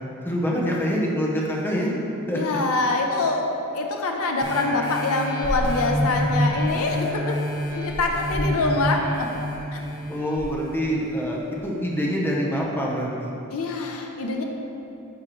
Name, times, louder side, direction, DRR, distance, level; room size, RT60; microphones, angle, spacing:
voice 1, 0.2-1.9 2.3-2.6 10.1-13.3, equal, 10° left, -3 dB, 0.8 m, -25 dB
voice 2, 2.3-3.5 3.7-7.3 7.8-9.3 9.7-9.8 13.5-14.4, left 3 dB, 75° left, 2 dB, 0.6 m, -24 dB
sound 1, 4.4-11.6 12.1-12.2, equal, 25° right, 1.5 m, -28 dB
11.0 x 4.6 x 3.0 m, 2.8 s
head